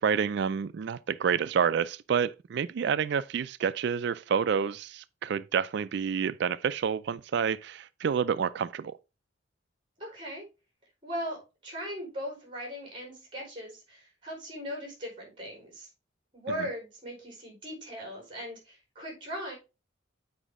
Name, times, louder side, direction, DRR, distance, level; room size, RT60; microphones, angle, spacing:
voice 1, 0.0-9.0, right 7 dB, 60° right, 0.3 m, -28 dB
voice 2, 10.0-10.4 11.0-15.9 16.3-19.5, equal, 25° right, 4.4 m, -39 dB
8.2 x 5.0 x 3.6 m
head